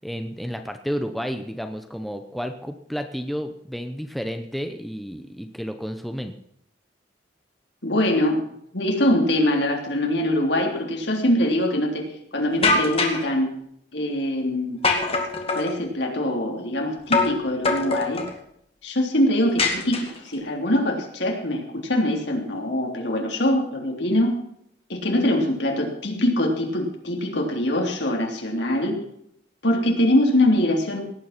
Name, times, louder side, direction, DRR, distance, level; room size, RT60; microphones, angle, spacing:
voice 1, 0.0-6.4, equal, ahead, 6 dB, 0.8 m, -31 dB
voice 2, 7.8-8.4 8.7-13.5 13.9-14.8 15.5-18.2 18.8-24.4 24.9-29.0 29.6-31.0, left 1 dB, 70° left, 2 dB, 3.4 m, -23 dB
sound 1, 12.6-13.3 14.8-15.7 17.1-17.4 17.6-18.3 19.6-20.3, left 3 dB, 30° left, 2.2 m, -23 dB
18.0 x 9.3 x 6.0 m, 0.72 s
head